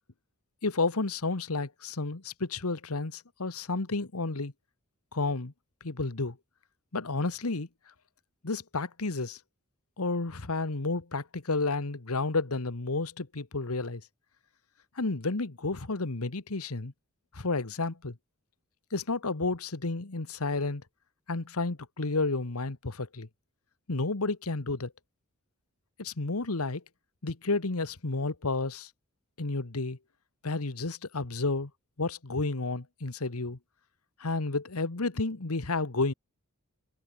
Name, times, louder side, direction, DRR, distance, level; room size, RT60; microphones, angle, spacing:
voice 1, 0.6-4.5 5.1-5.5 5.8-6.3 6.9-7.7 8.4-9.4 10.0-14.0 15.0-16.9 17.3-18.1 18.9-20.8 21.3-23.3 23.9-24.9 26.0-26.8 27.2-28.9 29.4-30.0 30.4-31.7 32.0-33.6 34.2-36.1, left 3 dB, 90° left, 1.5 m, -31 dB
head